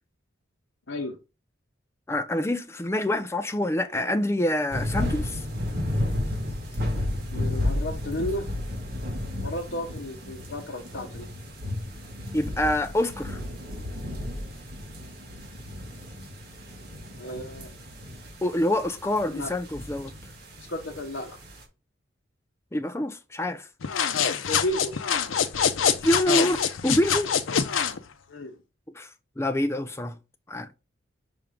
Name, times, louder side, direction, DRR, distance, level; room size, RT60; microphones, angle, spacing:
voice 1, 0.9-1.2 7.3-8.4 9.4-11.3 17.2-17.7 19.3-19.5 20.6-21.4 24.5-25.0 28.3-28.6, left 1 dB, 65° left, 1.0 m, -33 dB
voice 2, 2.1-5.4 12.3-13.4 18.4-20.1 22.7-23.7 26.0-27.3 28.9-29.1 29.4-30.2 30.5-30.7, left 1 dB, 15° left, 0.5 m, -26 dB
sound 1, 4.7-21.6, left 1 dB, 50° right, 1.8 m, -33 dB
sound 2, 23.8-28.0, left 7 dB, 85° left, 0.6 m, -25 dB
5.8 x 3.6 x 5.2 m
head